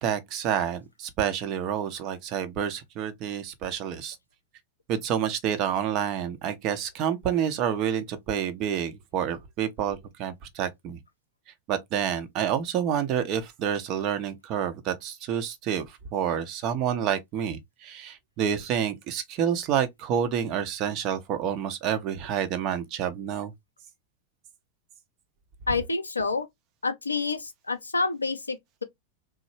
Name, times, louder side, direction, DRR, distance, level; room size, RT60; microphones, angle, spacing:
voice 1, 0.0-4.2 4.9-11.0 11.7-15.9 16.1-23.5, right 8 dB, 40° right, 0.7 m, -28 dB
voice 2, 25.7-26.5 26.8-28.8, left 3 dB, 80° left, 0.4 m, -28 dB
3.0 x 2.0 x 3.1 m
figure-of-eight pair, 90°, 0 cm